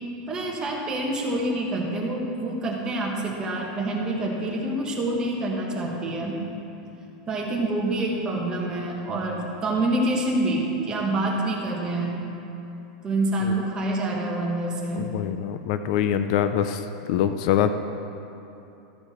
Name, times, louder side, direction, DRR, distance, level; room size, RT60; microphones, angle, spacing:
voice 1, 0.3-6.3 7.3-12.2 13.0-15.1, right 1 dB, 20° right, -2 dB, 1.4 m, -27 dB
voice 2, 15.0-16.8 17.1-17.7, left 10 dB, 55° left, 10 dB, 0.4 m, -24 dB
13.5 x 6.9 x 4.3 m, 2.9 s
supercardioid pair, 150°, 4 cm